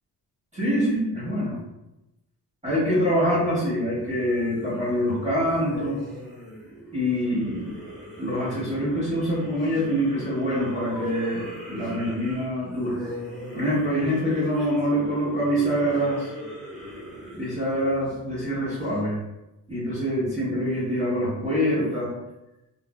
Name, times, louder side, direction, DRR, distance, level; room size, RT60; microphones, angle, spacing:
voice 1, 0.5-1.6 2.6-6.0 6.9-7.7 8.2-13.0 13.5-16.3 17.3-19.2 19.7-22.1, equal, 15° right, -9 dB, 1.1 m, -25 dB
sound 1, 4.0-18.9, left 1 dB, ahead, 0.8 m, -40 dB
2.5 x 2.2 x 2.3 m, 0.95 s
cardioid pair, 75°, 41 cm